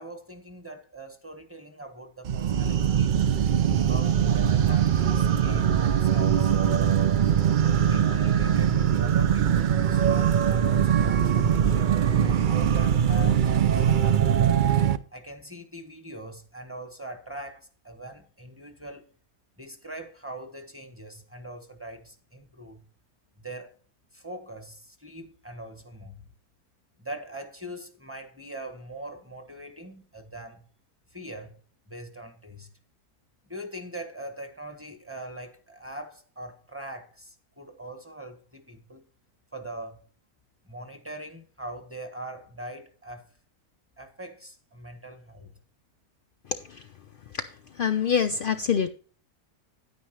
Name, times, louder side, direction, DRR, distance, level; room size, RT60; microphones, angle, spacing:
voice 1, 0.0-3.4 3.8-7.2 7.9-11.9 12.4-14.5 15.1-19.1 19.6-22.8 23.4-23.8 24.1-26.3 27.0-30.6 31.1-31.5 31.9-32.7 33.5-39.0 39.5-40.0 40.6-43.3 44.0-45.6, right 1 dB, 10° right, 1.2 m, -42 dB
sound 1, 2.2-15.0, right 9 dB, 80° right, 0.4 m, -22 dB
voice 2, 47.8-48.9, left 7 dB, 75° left, 0.4 m, -25 dB
9.9 x 9.5 x 3.2 m
omnidirectional pair, 1.6 m